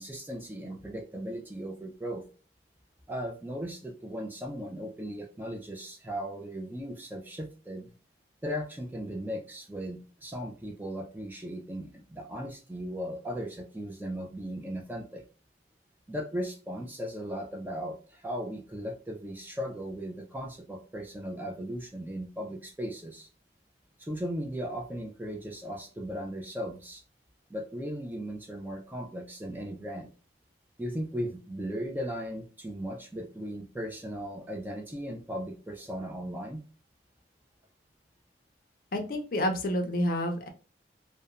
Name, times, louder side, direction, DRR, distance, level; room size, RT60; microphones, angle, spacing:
voice 1, 0.0-2.2 3.1-7.9 8.4-15.2 16.1-23.3 24.0-27.0 27.5-30.1 30.8-36.6, equal, 10° right, 1 dB, 0.4 m, -37 dB
voice 2, 38.9-40.5, equal, 50° left, 5 dB, 0.5 m, -29 dB
2.8 x 2.1 x 2.4 m, 0.36 s
head